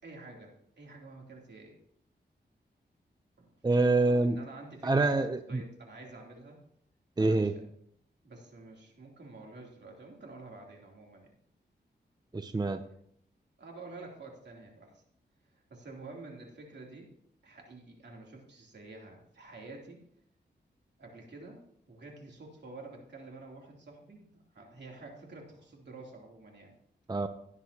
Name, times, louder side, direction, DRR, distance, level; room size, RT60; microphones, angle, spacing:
voice 1, 0.0-1.8 3.4-3.5 4.0-6.6 7.2-7.5 8.2-11.3 13.6-15.0 15.5-17.1 17.4-20.0 21.0-21.6 21.9-26.7, right 3 dB, 70° right, 0 dB, 3.1 m, -49 dB
voice 2, 3.6-4.4 4.8-5.6 7.2-7.5 12.3-12.8 27.1-27.3, right 3 dB, 20° right, 9 dB, 0.6 m, -26 dB
17.0 x 9.8 x 2.9 m, 0.69 s
wide cardioid pair, 85°, 18 cm